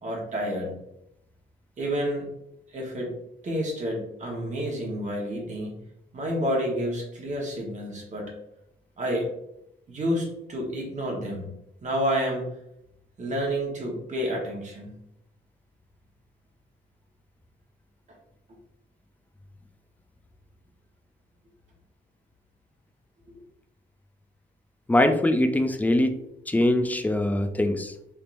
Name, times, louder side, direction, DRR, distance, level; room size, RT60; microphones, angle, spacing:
voice 1, 0.0-0.7 1.8-2.3 2.7-3.1 3.4-5.8 6.1-8.3 9.0-9.3 9.9-11.5 11.8-12.5 13.2-14.9, equal, 35° right, -1 dB, 1.2 m, -29 dB
voice 2, 24.9-26.2 26.5-27.9, left 1 dB, 10° left, 7 dB, 0.4 m, -22 dB
3.4 x 2.8 x 2.5 m, 0.80 s
cardioid pair, 90°, 20 cm